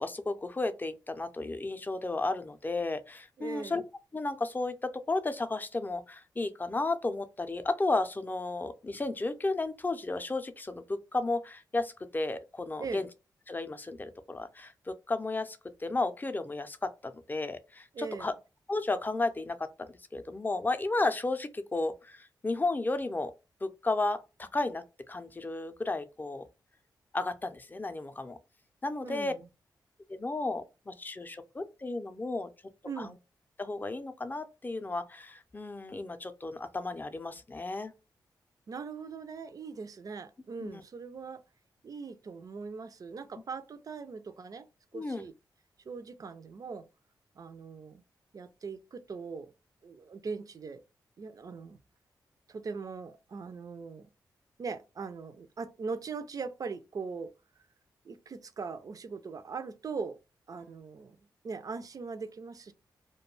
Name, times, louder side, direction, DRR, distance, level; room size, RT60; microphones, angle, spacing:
voice 1, 0.0-3.8 4.1-13.1 13.5-18.3 18.7-19.7 20.1-23.3 23.6-26.4 27.1-28.4 28.8-29.3 30.1-32.5 33.0-33.1 33.6-37.9 40.6-40.8 44.9-45.3, left 2 dB, 25° left, 0.4 m, -33 dB
voice 2, 3.4-3.8 12.8-13.1 17.9-18.3 29.0-29.4 32.8-33.2 38.7-41.4 41.8-44.7 44.9-45.3 45.9-46.9 47.4-48.0 48.3-49.5 49.8-50.8 51.2-51.8 52.5-54.1 54.6-57.3 58.0-60.2 60.5-61.2 61.4-62.7, right 5 dB, 50° right, 0.4 m, -40 dB
2.2 x 2.2 x 3.1 m
cardioid pair, 55°, 8 cm